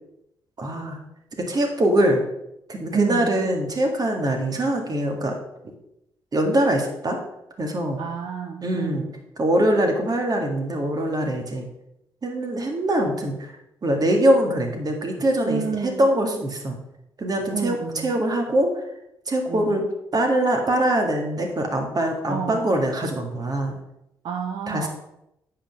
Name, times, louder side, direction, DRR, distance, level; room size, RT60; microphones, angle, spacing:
voice 1, 0.6-1.0 1.4-2.2 2.7-5.4 6.3-7.2 7.6-8.0 8.6-9.1 9.4-11.6 12.2-13.5 13.8-15.6 16.0-16.8 17.2-18.7 19.3-19.8 20.1-23.8 24.7-24.9, right 1 dB, 40° right, 3 dB, 1.9 m, -23 dB
voice 2, 2.9-3.5 8.0-9.1 15.5-16.1 17.5-18.1 19.5-19.8 22.3-22.7 24.2-24.9, right 6 dB, 65° right, 2 dB, 0.8 m, -30 dB
8.0 x 5.0 x 5.2 m, 0.83 s
hypercardioid pair, 45°, 10 cm